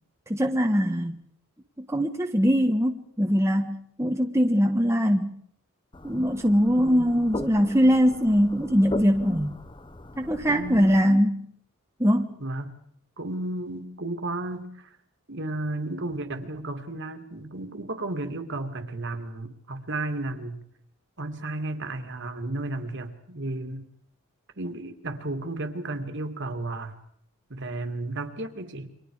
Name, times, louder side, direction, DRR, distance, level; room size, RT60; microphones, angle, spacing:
voice 1, 0.3-1.2 1.8-5.3 6.0-9.6 10.2-11.5 12.0-12.4, equal, 10° right, 3 dB, 1.4 m, -22 dB
sound 1, 5.9-11.0, left 2 dB, 20° left, 1.0 m, -39 dB
voice 2, 6.8-7.2 10.5-11.0 12.4-12.8 13.2-15.0 15.3-20.6 21.2-23.9 24.6-26.9 27.5-28.9, right 2 dB, 55° right, 7 dB, 2.5 m, -33 dB
29.5 x 25.0 x 5.0 m, 0.64 s
head